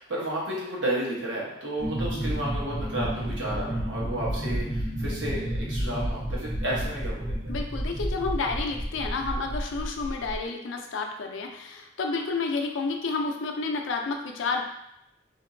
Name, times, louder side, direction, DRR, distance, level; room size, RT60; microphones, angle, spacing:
voice 1, 0.0-7.5, right 1 dB, 75° right, -5 dB, 1.0 m, -32 dB
sound 1, 1.8-10.4, equal, ahead, 1.0 m, -31 dB
voice 2, 7.5-14.6, left 4 dB, 75° left, 3 dB, 0.4 m, -30 dB
2.8 x 2.6 x 2.6 m, 0.80 s
head